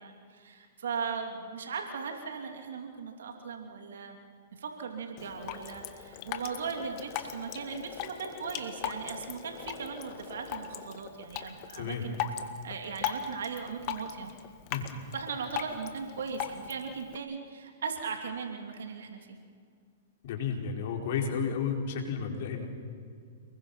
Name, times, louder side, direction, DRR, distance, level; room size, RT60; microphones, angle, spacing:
voice 1, 0.0-4.2 4.5-12.2 12.6-14.3 15.1-19.4, right 5 dB, 80° right, 4 dB, 3.0 m, -38 dB
Drip, 5.2-17.2, left 9 dB, 45° left, 2.0 m, -39 dB
voice 2, 20.2-22.7, left 6 dB, 60° left, 2 dB, 4.9 m, -32 dB
29.5 x 21.5 x 5.9 m, 2.2 s
hypercardioid pair, 125°, 0 cm